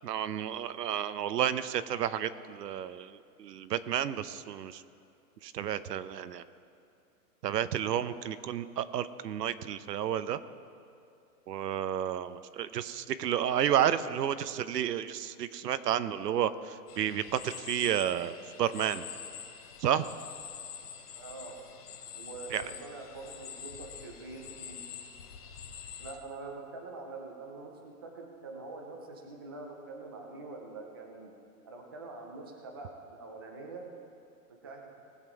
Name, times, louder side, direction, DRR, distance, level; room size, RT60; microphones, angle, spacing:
voice 1, 0.0-3.1 3.4-4.8 5.4-6.4 7.4-10.4 11.5-16.5 17.0-19.1 19.8-20.1 22.5-22.6, right 10 dB, 85° right, 13 dB, 0.8 m, -31 dB
sound 1, 16.9-26.1, left 8 dB, 25° left, 0.6 m, -46 dB
voice 2, 21.1-21.6 22.1-24.8 26.0-31.3 31.6-33.9 34.5-34.9, right 3 dB, 15° right, 1 dB, 0.4 m, -45 dB
19.5 x 7.3 x 4.7 m, 2.4 s
hypercardioid pair, 150°, 47 cm